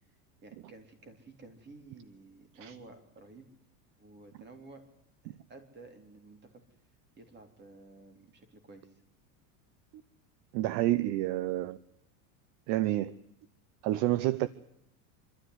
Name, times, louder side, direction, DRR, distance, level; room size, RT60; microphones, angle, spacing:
voice 1, 0.4-3.5 4.0-4.8 5.2-6.6 7.2-9.0, right 3 dB, 20° right, 7 dB, 3.6 m, -53 dB
voice 2, 10.5-11.8 12.7-13.2 13.8-14.5, right 15 dB, 50° right, 18 dB, 0.8 m, -29 dB
25.5 x 13.0 x 9.7 m, 0.81 s
supercardioid pair, 145°, 47 cm